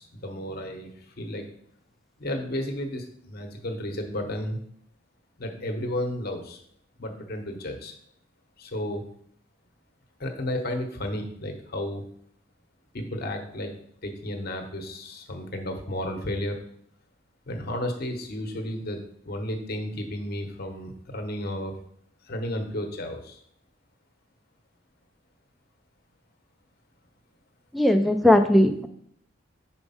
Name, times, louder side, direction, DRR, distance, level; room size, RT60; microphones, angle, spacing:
voice 1, 0.0-1.5 2.2-4.6 5.4-6.6 7.0-7.9 8.6-9.0 10.2-12.0 12.9-13.7 14.0-16.6 17.5-19.0 19.2-21.7 22.3-23.4, left 1 dB, 50° left, 4 dB, 0.9 m, -32 dB
voice 2, 27.7-28.9, left 1 dB, ahead, 8 dB, 0.4 m, -18 dB
4.5 x 4.4 x 5.6 m, 0.66 s
head